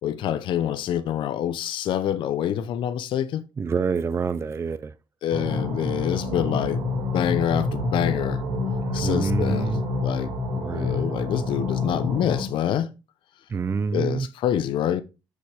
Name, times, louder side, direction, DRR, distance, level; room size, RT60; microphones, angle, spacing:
voice 1, 0.0-3.4 5.2-8.4 8.9-10.3 10.6-12.9 13.9-15.0, left 10 dB, 75° left, 0.7 m, -26 dB
voice 2, 3.6-4.9 8.9-9.8 10.6-11.1 13.5-14.3, right 5 dB, 30° right, 0.4 m, -27 dB
sound 1, 5.3-12.4, left 2 dB, 75° right, 3.3 m, -27 dB
6.5 x 5.6 x 5.0 m
cardioid pair, 100°, 8 cm